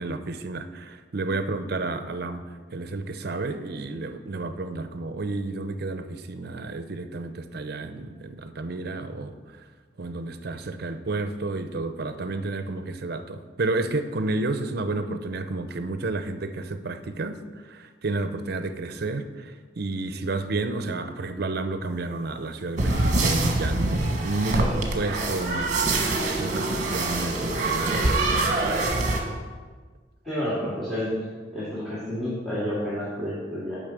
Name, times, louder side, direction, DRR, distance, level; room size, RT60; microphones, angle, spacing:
voice 1, 0.0-9.3 10.0-17.4 17.7-25.8 26.4-28.8, right 2 dB, 60° right, 9 dB, 0.6 m, -31 dB
sound 1, 22.8-29.2, right 2 dB, 45° right, 1.2 m, -24 dB
voice 2, 30.2-31.1 31.5-33.8, equal, ahead, -9 dB, 2.1 m, -30 dB
7.1 x 5.3 x 6.7 m, 1.5 s
head